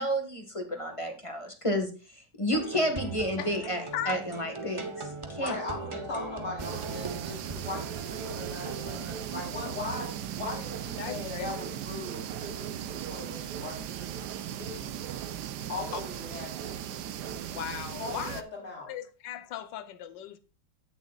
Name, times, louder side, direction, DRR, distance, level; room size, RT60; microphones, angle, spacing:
voice 1, 0.0-4.8 5.3-5.6, equal, 20° left, 1.4 m, -31 dB
sound 1, 2.5-9.2, right 3 dB, 25° right, 0.7 m, -39 dB
voice 2, 3.4-4.2 11.0-11.5 15.9-16.0 17.5-18.4 18.9-20.4, left 10 dB, 85° left, 1.5 m, -37 dB
voice 3, 5.3-14.3 14.6-14.9 15.7-16.8 18.0-18.9, left 3 dB, 45° left, 4.0 m, -39 dB
sound 2, 6.6-18.4, right 10 dB, 75° right, 1.3 m, -37 dB
16.5 x 6.7 x 2.4 m
omnidirectional pair, 1.9 m